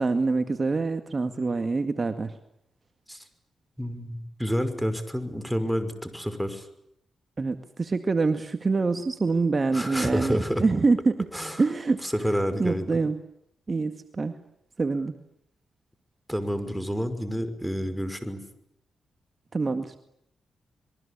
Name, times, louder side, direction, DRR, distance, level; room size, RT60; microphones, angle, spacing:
voice 1, 0.0-2.4 7.4-11.3 11.6-12.0 12.6-13.2 13.7-14.4 14.8-15.2 19.5-20.0, right 3 dB, 40° right, 8 dB, 2.1 m, -25 dB
voice 2, 3.8-6.7 9.7-10.6 11.3-11.6 12.0-12.9 16.3-18.4, equal, ahead, 10 dB, 5.7 m, -29 dB
27.0 x 22.5 x 8.5 m, 0.77 s
cardioid pair, 60°, 0 cm